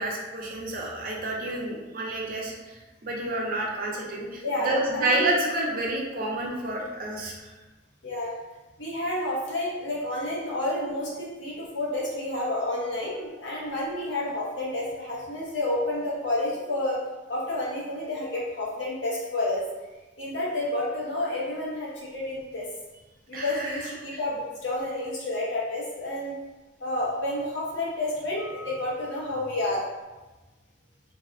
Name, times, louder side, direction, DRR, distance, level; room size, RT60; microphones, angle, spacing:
voice 1, 0.0-7.5 23.3-23.9, right 1 dB, 50° right, -2 dB, 0.6 m, -29 dB
voice 2, 4.4-5.3 8.0-8.3 8.8-17.0 17.3-19.6 20.2-22.7 23.3-26.3 26.8-29.8, left 1 dB, 85° left, -6 dB, 1.0 m, -30 dB
2.6 x 2.2 x 3.5 m, 1.2 s
head